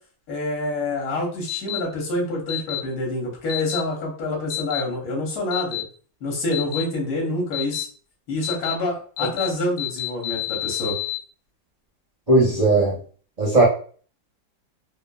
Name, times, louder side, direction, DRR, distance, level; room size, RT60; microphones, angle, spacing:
voice 1, 0.3-5.9 6.2-7.9 8.3-10.9, left 2 dB, 55° left, -1 dB, 1.3 m, -27 dB
sound 1, 1.5-1.8 2.5-2.8 3.5-3.8 4.5-4.8 5.5-5.8 6.5-6.8 7.5-7.8 8.4-8.7 9.2-9.5 9.8-11.2, left 19 dB, 80° left, 1.3 m, -28 dB
voice 2, 12.3-12.9 13.4-13.6, right 2 dB, 45° right, -6 dB, 0.5 m, -17 dB
3.1 x 2.5 x 2.2 m, 0.42 s
omnidirectional pair, 2.1 m